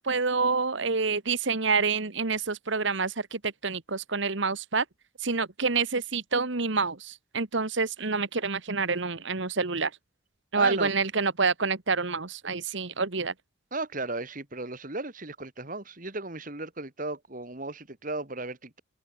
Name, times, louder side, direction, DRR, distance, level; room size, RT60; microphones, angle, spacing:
voice 1, 0.0-4.8 5.2-9.9 10.5-13.3, right 4 dB, 65° right, 1.4 m, -27 dB
voice 2, 10.5-10.9 13.7-18.8, right 2 dB, 40° right, 2.5 m, -35 dB
open air
head